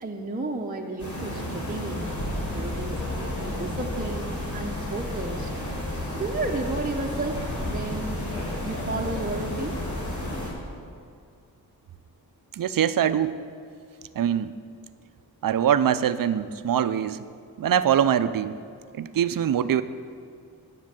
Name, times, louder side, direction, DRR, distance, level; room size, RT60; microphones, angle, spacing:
voice 1, 0.0-2.2 2.5-5.5 6.1-8.3 8.6-9.8, right 2 dB, 20° right, 0 dB, 0.7 m, -32 dB
sound 1, 1.0-10.5, left 1 dB, 50° left, 3.4 m, -31 dB
voice 2, 12.6-13.4 14.2-14.5 15.4-17.2 17.6-18.6 19.0-19.8, right 9 dB, 60° right, 13 dB, 0.5 m, -23 dB
9.8 x 8.1 x 7.5 m, 2.4 s
wide cardioid pair, 145°, 38 cm